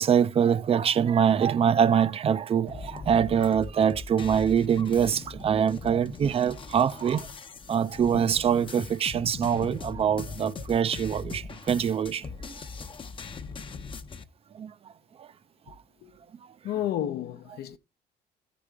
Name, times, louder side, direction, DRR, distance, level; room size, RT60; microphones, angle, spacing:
voice 1, 0.0-7.3 7.7-12.5 14.6-14.7 15.2-15.3, right 8 dB, 35° right, 0.5 m, -24 dB
sound 1, 2.7-14.2, left 4 dB, 30° left, 0.7 m, -40 dB
voice 2, 16.6-17.8, left 11 dB, 70° left, 0.8 m, -31 dB
15.0 x 5.1 x 3.4 m
cardioid pair, 110°, 17 cm